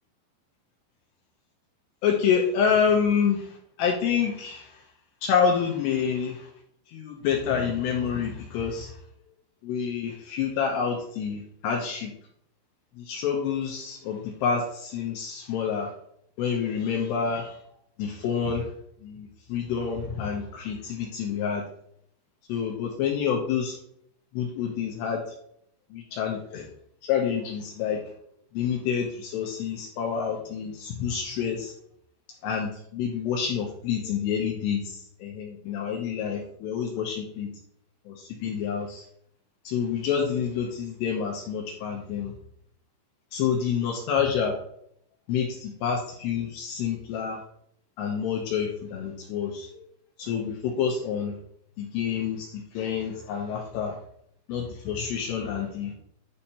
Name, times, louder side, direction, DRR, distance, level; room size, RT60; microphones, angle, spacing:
voice 1, 2.0-4.8 5.2-6.5 6.9-9.0 9.6-12.1 13.0-15.9 16.4-17.6 18.0-18.7 19.0-21.6 22.5-23.8 24.3-25.2 25.9-26.7 27.0-28.0 28.5-31.7 32.4-37.5 38.1-39.1 39.6-42.3 43.3-44.5 45.3-47.4 48.0-49.9 50.2-51.3 51.8-54.0 54.5-55.9, left 7 dB, 85° left, 1 dB, 2.5 m, -28 dB
10.5 x 5.3 x 2.9 m, 0.71 s
omnidirectional pair, 5.8 m